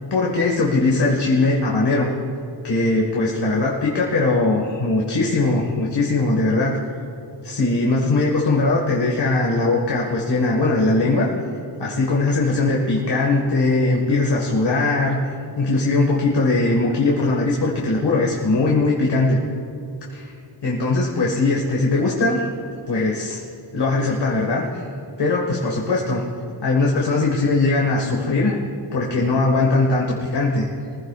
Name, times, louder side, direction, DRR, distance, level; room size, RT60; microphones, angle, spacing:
voice 1, 0.1-2.1 2.6-6.8 7.4-11.3 11.8-19.4 20.1-20.3 20.6-22.5 22.9-23.4 23.7-24.8 25.2-30.7, left 2 dB, 60° left, -2 dB, 1.6 m, -20 dB
23.0 x 15.5 x 2.4 m, 2.6 s
wide cardioid pair, 160°, 44 cm